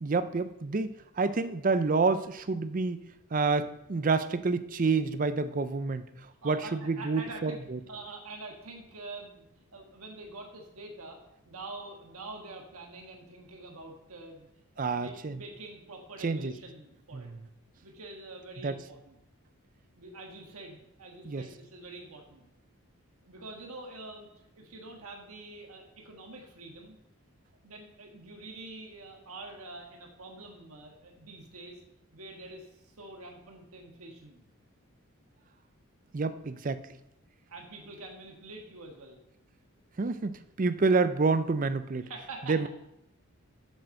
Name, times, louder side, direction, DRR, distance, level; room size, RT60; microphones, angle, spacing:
voice 1, 0.0-3.0 3.3-6.0 6.4-7.8 14.8-15.4 16.2-16.5 17.1-17.5 18.6-18.8 21.2-21.5 36.1-36.8 40.0-42.1 42.5-42.7, right 4 dB, 35° right, 12 dB, 0.5 m, -28 dB
voice 2, 6.4-7.6 7.9-9.5 9.7-11.2 11.4-14.5 14.7-17.3 17.8-19.1 20.0-22.4 23.2-27.0 27.6-31.8 32.1-34.4 37.5-39.2 42.0-42.5, right 2 dB, 75° right, 1 dB, 1.5 m, -46 dB
7.8 x 7.0 x 6.5 m, 0.84 s
head